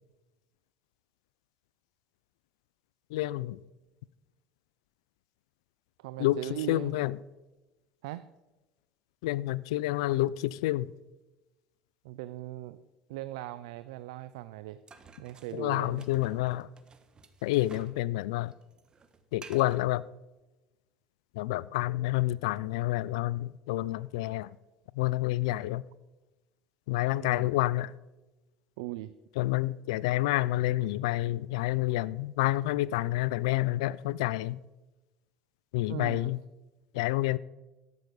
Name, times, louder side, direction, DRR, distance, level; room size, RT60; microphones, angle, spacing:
voice 1, 3.1-3.6 6.2-6.4 6.7-7.2 9.2-10.9 15.5-16.7 17.4-18.5 19.3-20.0 21.4-24.5 25.0-25.8 26.9-27.9 29.4-34.6 35.7-36.4 36.9-37.4, left 17 dB, 80° left, 0.3 m, -28 dB
voice 2, 6.0-7.0 8.0-8.3 12.0-12.8 13.1-14.8 15.2-16.1 27.2-27.5 28.8-29.1 35.9-36.3, right 15 dB, 80° right, 0.4 m, -39 dB
sound 1, 14.9-18.0 18.3-19.9, right 5 dB, 30° right, 1.2 m, -52 dB
12.0 x 7.9 x 5.3 m
supercardioid pair, 90°, 3 cm